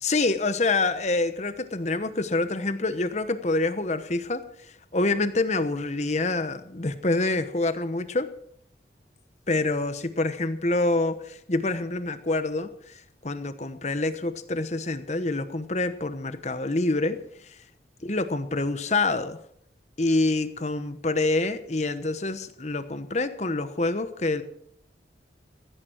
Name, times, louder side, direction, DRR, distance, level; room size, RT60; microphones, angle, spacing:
voice 1, 0.0-4.5 4.9-8.3 9.5-12.9 13.2-17.2 17.4-17.5 18.0-19.4 20.0-24.4, left 2 dB, 40° left, 11 dB, 1.1 m, -26 dB
16.0 x 15.5 x 4.6 m, 0.66 s
head